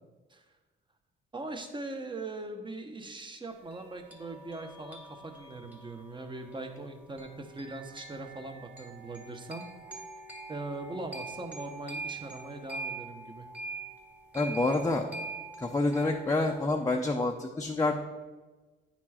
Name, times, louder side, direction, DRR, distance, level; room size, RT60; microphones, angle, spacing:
voice 1, 1.3-9.7 10.5-13.4, right 2 dB, 25° right, 5 dB, 1.0 m, -41 dB
sound 1, 3.7-16.7, right 3 dB, 10° right, 1.3 m, -44 dB
voice 2, 14.3-15.1 15.6-17.9, left 2 dB, 15° left, 1 dB, 0.6 m, -28 dB
9.4 x 4.5 x 4.3 m, 1.2 s
cardioid pair, 90°, 20 cm